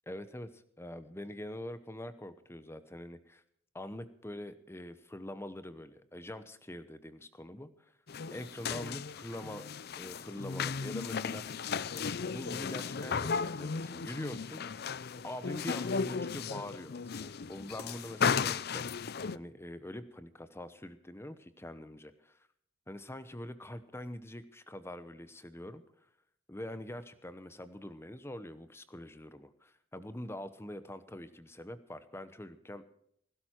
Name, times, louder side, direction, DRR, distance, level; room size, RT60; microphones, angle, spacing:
voice 1, 0.1-3.4 3.7-7.9 8.3-9.7 10.0-11.5 11.9-14.6 15.2-22.5 22.9-25.8 26.5-33.0, left 1 dB, 10° left, 13 dB, 0.9 m, -44 dB
sound 1, 8.1-19.4, left 5 dB, 50° left, 0.5 m, -35 dB
17.5 x 16.5 x 4.5 m, 0.68 s
head